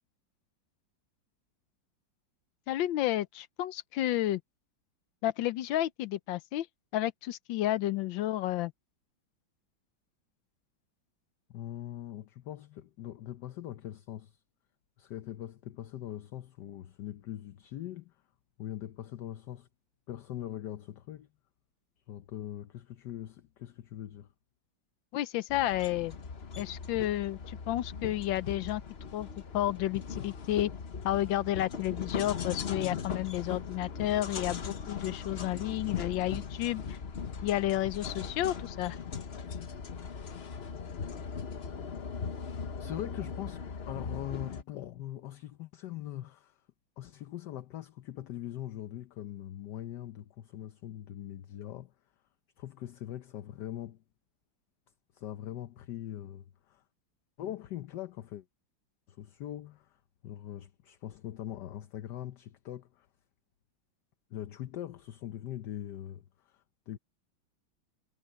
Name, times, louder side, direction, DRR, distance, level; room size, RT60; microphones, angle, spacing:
voice 1, 2.7-4.4 5.2-6.7 6.9-8.7 25.1-26.1 26.6-28.8 29.1-29.3 29.5-30.7 31.0-36.8 37.4-39.0, left 14 dB, 90° left, 1.4 m, -31 dB
voice 2, 11.5-14.4 15.0-18.1 18.6-19.7 20.1-21.3 22.1-24.3 42.8-43.6 43.9-46.6 47.0-51.9 52.6-54.0 55.1-56.8 57.4-58.4 59.1-63.1 64.3-67.0, left 12 dB, 70° left, 1.3 m, -42 dB
sound 1, 25.5-44.6, left 6 dB, 40° left, 1.0 m, -39 dB
omnidirectional pair, 2.0 m